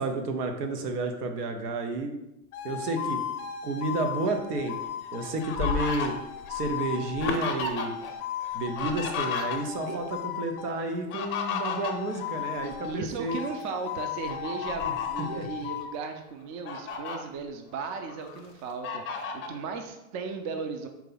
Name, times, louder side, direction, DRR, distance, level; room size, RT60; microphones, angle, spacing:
voice 1, 0.0-2.1 2.6-3.2 3.6-4.8 5.1-6.2 6.5-7.9 8.5-13.4 14.8-14.9 15.4-15.5, right 2 dB, 90° right, 6 dB, 0.9 m, -31 dB
sound 1, 2.5-10.8 11.3-13.0 13.3-15.9, left 10 dB, 70° left, 0.7 m, -36 dB
Fowl, 4.8-8.1 8.4-9.9 10.9-13.0 13.4-13.6 14.3-15.3 15.9-16.0 16.4-17.2 17.7-18.4 18.8-19.6, left 5 dB, 25° left, 0.6 m, -34 dB
voice 2, 12.6-20.9, right 5 dB, 40° right, 5 dB, 0.6 m, -36 dB
4.7 x 2.9 x 3.9 m, 0.90 s
supercardioid pair, 130°, 45 cm